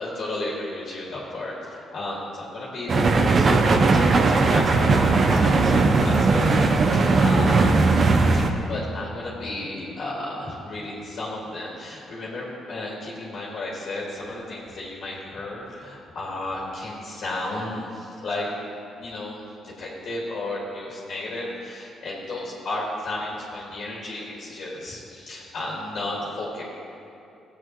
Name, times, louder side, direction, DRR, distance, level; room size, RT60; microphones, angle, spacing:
voice 1, 0.0-3.6 3.9-7.7 8.3-18.5 19.0-26.6, left 2 dB, 60° left, -5 dB, 2.0 m, -33 dB
sound 1, 2.9-8.5, right 3 dB, 45° right, 0.7 m, -18 dB
15.5 x 8.2 x 3.0 m, 2.7 s
cardioid pair, 90°, 0 cm